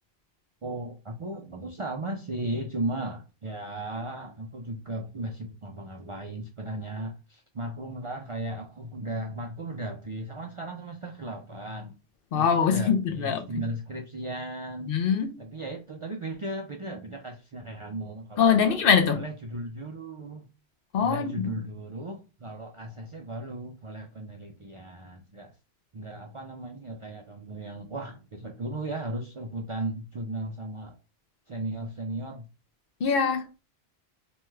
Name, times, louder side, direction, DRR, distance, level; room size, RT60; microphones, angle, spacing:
voice 1, 0.6-11.9 12.3-15.0 15.4-18.7 19.1-20.5 21.0-25.5 25.9-31.0 31.5-32.4, right 1 dB, 50° right, 0.4 m, -36 dB
voice 2, 12.3-13.4 14.9-15.3 18.4-19.2 20.9-21.5 33.0-33.5, left 6 dB, 65° left, 0.7 m, -23 dB
3.0 x 2.2 x 3.1 m
omnidirectional pair, 1.1 m